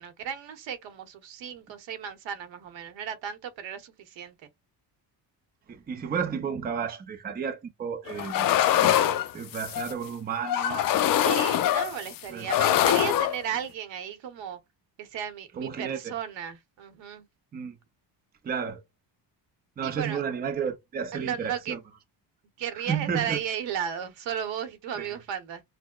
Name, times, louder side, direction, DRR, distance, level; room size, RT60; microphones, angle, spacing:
voice 1, 0.0-4.3 11.2-14.6 15.0-17.3 19.8-20.2 21.1-21.8 22.6-25.6, right 8 dB, 80° right, 1.0 m, -34 dB
voice 2, 5.7-9.0 9.3-11.1 12.3-12.7 15.6-16.1 17.5-17.8 18.4-18.8 19.8-21.8 22.7-23.4 25.0-25.1, right 7 dB, 20° right, 0.5 m, -32 dB
sound 1, 8.1-9.9 10.4-12.2 12.5-13.4, left 11 dB, 50° left, 0.4 m, -24 dB
6.0 x 2.1 x 2.3 m
cardioid pair, 165°, 44 cm